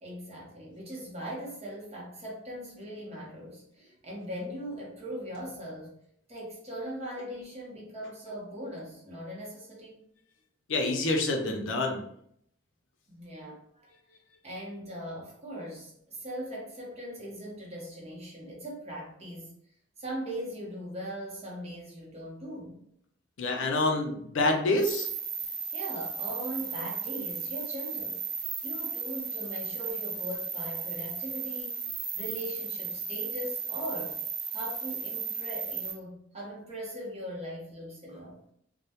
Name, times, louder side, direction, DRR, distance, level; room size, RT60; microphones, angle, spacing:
voice 1, 0.0-6.0 6.3-10.0 13.1-13.9 14.4-19.6 20.0-22.8 25.7-28.2 28.6-34.2 34.5-38.4, equal, 35° right, -4 dB, 0.7 m, -40 dB
voice 2, 10.7-12.0 23.4-25.1, left 2 dB, 70° left, 2 dB, 0.5 m, -27 dB
sound 1, 24.8-35.9, right 6 dB, 70° right, 1.0 m, -35 dB
2.1 x 2.1 x 2.8 m, 0.68 s
head